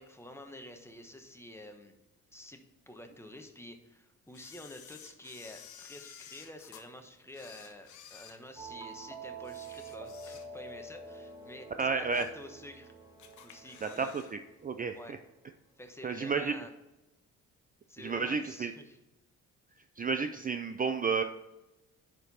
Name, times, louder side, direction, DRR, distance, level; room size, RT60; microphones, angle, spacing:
voice 1, 0.0-1.9 2.3-2.6 2.9-12.9 13.4-14.1 14.9-15.1 15.8-16.7 17.9-19.0, left 1 dB, 10° left, 5 dB, 1.1 m, -49 dB
Camera, 4.3-6.8 7.3-8.9 9.4-10.8 11.1-11.3 11.8-12.4 12.8-12.9 13.2-14.4 14.6-14.7, left 8 dB, 75° left, 1.0 m, -53 dB
sound 1, 8.6-15.0, right 3 dB, 10° right, 1.4 m, -47 dB
voice 2, 11.8-12.3 13.8-15.2 16.0-16.6 18.0-18.7 20.0-21.2, right 5 dB, 30° right, 8 dB, 0.5 m, -32 dB
10.5 x 4.4 x 4.2 m, 1.0 s
cardioid pair, 90°, 30 cm